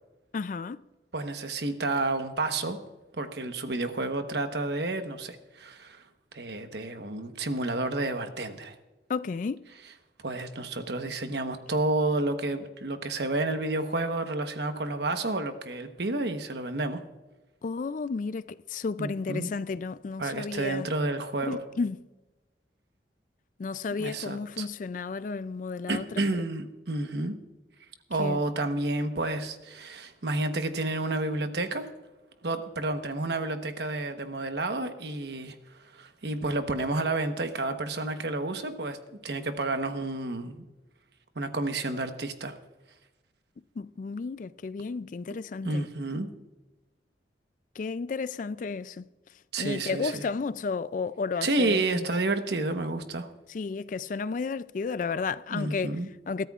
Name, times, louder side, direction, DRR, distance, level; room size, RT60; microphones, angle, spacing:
voice 1, 0.3-0.8 9.1-9.6 17.6-20.9 21.4-22.0 23.6-26.5 28.2-28.4 43.8-45.9 47.8-49.1 49.6-52.0 53.5-56.0 56.3-56.5, left 4 dB, 45° left, 0.3 m, -33 dB
voice 2, 1.1-2.8 3.1-6.0 6.3-8.7 10.2-17.0 19.0-19.5 20.2-21.6 24.0-24.7 25.9-27.4 28.1-31.9 32.4-35.6 35.9-40.7 41.3-42.6 45.6-46.3 49.5-50.2 51.4-53.3 55.5-56.1, right 2 dB, 65° right, 1.1 m, -30 dB
22.0 x 13.5 x 2.4 m
head